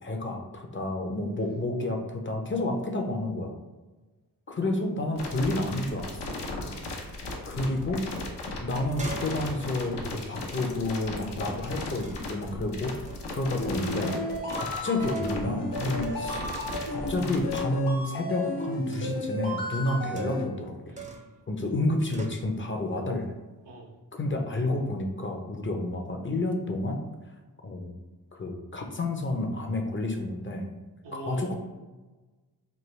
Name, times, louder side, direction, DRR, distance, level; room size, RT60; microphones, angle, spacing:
voice 1, 0.0-3.6 4.5-6.4 7.5-8.0 8.6-13.0 13.3-14.1 14.5-16.4 16.9-21.0 21.5-23.3 24.1-27.0 27.6-27.9 28.3-30.7 31.1-31.5, left 2 dB, 30° left, 3 dB, 0.5 m, -30 dB
sound 1, 5.2-17.6, left 2 dB, 80° left, 0.7 m, -36 dB
voice 2, 6.6-7.0 20.9-21.4 23.6-23.9 31.0-31.6, right 2 dB, 80° right, -2 dB, 0.8 m, -44 dB
sound 2, 9.0-11.3 12.0-12.4 13.1-13.3 13.8-14.9 15.1-15.5 15.9-16.4 16.7-17.3 18.9-19.3 20.2-20.6 21.0-21.4 22.1-22.4, right 4 dB, 20° right, 0.5 m, -46 dB
sound 3, 13.6-20.4, left 1 dB, 60° left, 1.2 m, -33 dB
3.4 x 2.2 x 3.1 m, 1.2 s
cardioid pair, 45°, 41 cm